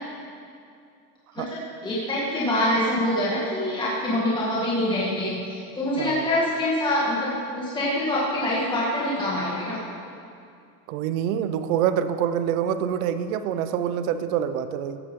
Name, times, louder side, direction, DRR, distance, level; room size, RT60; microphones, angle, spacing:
voice 1, 1.5-5.4 5.7-9.8, left 1 dB, 10° left, -7 dB, 1.9 m, -25 dB
voice 2, 6.0-6.3 10.9-15.0, right 9 dB, 65° right, 11 dB, 0.9 m, -26 dB
15.0 x 11.5 x 3.8 m, 2.4 s
supercardioid pair, 150°, 45 cm